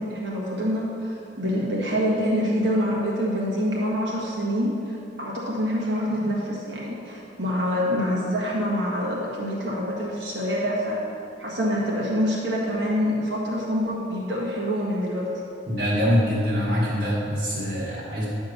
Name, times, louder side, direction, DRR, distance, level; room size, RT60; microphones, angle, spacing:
voice 1, 0.0-11.0 11.4-15.3, equal, 70° right, -5 dB, 1.6 m, -26 dB
voice 2, 15.7-18.3, equal, 50° right, -9 dB, 1.8 m, -24 dB
10.0 x 3.6 x 6.5 m, 2.7 s
head